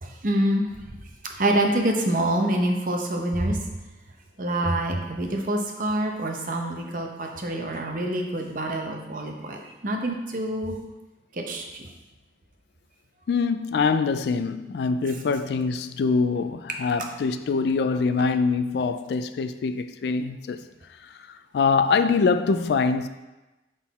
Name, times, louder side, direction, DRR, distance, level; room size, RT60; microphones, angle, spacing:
voice 1, 0.0-0.8 1.2-3.6 4.4-10.8 11.3-11.9, right 1 dB, 45° right, 0.7 m, -26 dB
voice 2, 13.3-20.6 21.5-23.1, left 4 dB, 65° left, 0.3 m, -24 dB
6.2 x 3.8 x 4.1 m
head